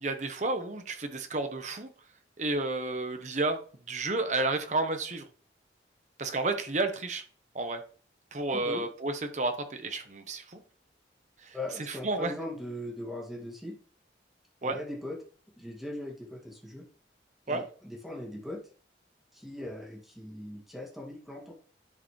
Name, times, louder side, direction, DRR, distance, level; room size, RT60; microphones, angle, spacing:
voice 1, 0.0-1.9 2.4-3.6 3.9-5.2 6.2-7.2 7.5-7.8 8.3-10.6 11.4-12.3 14.6-14.8 17.5-17.6, right 2 dB, 40° right, 7 dB, 1.0 m, -31 dB
voice 2, 8.5-8.8 11.5-13.7 14.6-15.2 15.6-16.8 17.5-18.6 19.3-21.7, left 1 dB, ahead, -2 dB, 2.1 m, -40 dB
11.0 x 4.8 x 3.2 m, 0.42 s
head